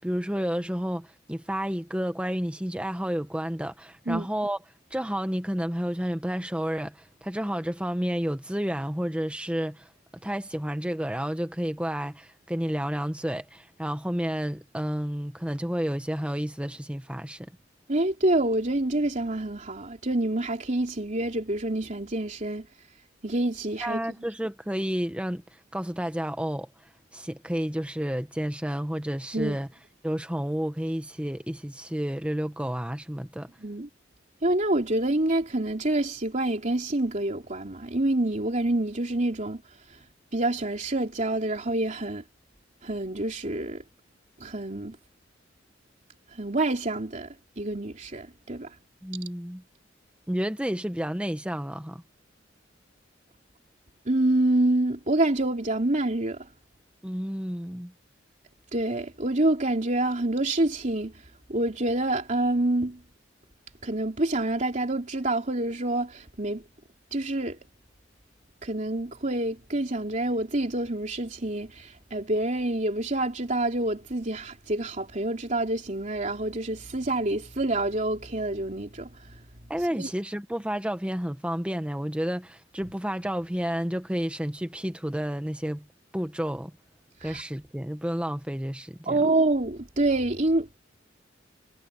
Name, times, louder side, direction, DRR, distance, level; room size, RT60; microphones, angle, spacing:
voice 1, 0.0-4.6 4.9-9.9 10.2-17.5 23.8-25.4 25.7-26.7 27.1-29.7 30.0-33.5 49.0-49.6 50.3-52.0 57.0-57.9 79.7-85.8 86.1-86.7 87.2-89.2, equal, 5° right, 1.1 m, -30 dB
voice 2, 17.9-22.7 23.2-24.0 29.3-29.6 33.6-33.9 34.4-39.6 39.9-40.0 40.3-42.2 42.8-43.8 44.4-45.0 46.3-48.7 54.0-56.5 58.7-61.2 61.5-63.0 63.8-66.6 67.1-67.6 68.6-79.3 80.0-80.1 87.2-87.4 89.0-90.8, right 2 dB, 40° right, 3.2 m, -27 dB
head